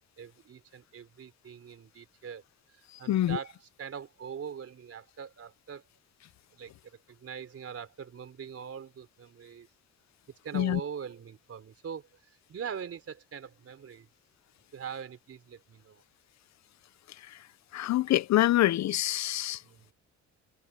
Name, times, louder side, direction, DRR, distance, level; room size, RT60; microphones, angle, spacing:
voice 1, 0.2-2.4 2.7-5.8 6.5-9.7 10.4-14.1 14.7-16.0 19.6-19.9, right 7 dB, 50° right, 3.8 m, -42 dB
voice 2, 3.1-3.4 10.5-10.8 17.2-17.4 17.7-19.6, left 14 dB, 65° left, 0.7 m, -26 dB
cardioid pair, 90°, 30 cm